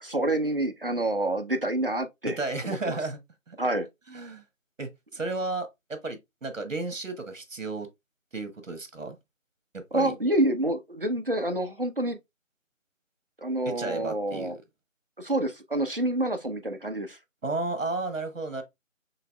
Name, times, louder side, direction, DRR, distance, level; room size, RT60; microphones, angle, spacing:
voice 1, 0.0-2.4 2.6-3.0 3.6-3.9 9.9-12.2 13.4-14.6 15.2-17.2, right 1 dB, 45° right, 0.6 m, -27 dB
voice 2, 2.2-3.2 3.5-3.7 4.1-4.4 4.8-7.9 8.3-9.2 9.7-10.1 13.6-14.6 17.4-18.6, right 3 dB, 70° right, 1.3 m, -33 dB
5.7 x 2.8 x 2.2 m
figure-of-eight pair, 175°, 40 cm